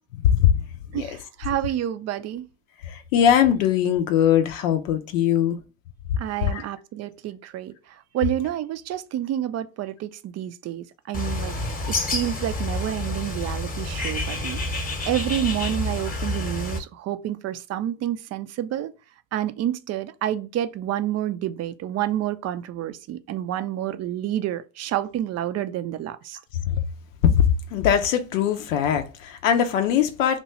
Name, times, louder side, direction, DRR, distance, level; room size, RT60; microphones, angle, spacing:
voice 1, 0.2-0.6 0.9-1.2 2.8-5.6 6.4-6.6 26.6-26.8 27.2-30.4, left 9 dB, 85° left, 0.5 m, -21 dB
voice 2, 0.9-2.5 6.2-7.7 8.1-11.6 11.9-18.9 19.3-26.4, right 12 dB, 45° right, 0.4 m, -29 dB
Bird, 11.1-16.8, left 2 dB, 20° left, 0.9 m, -28 dB
2.9 x 2.2 x 4.1 m
hypercardioid pair, 65°, 38 cm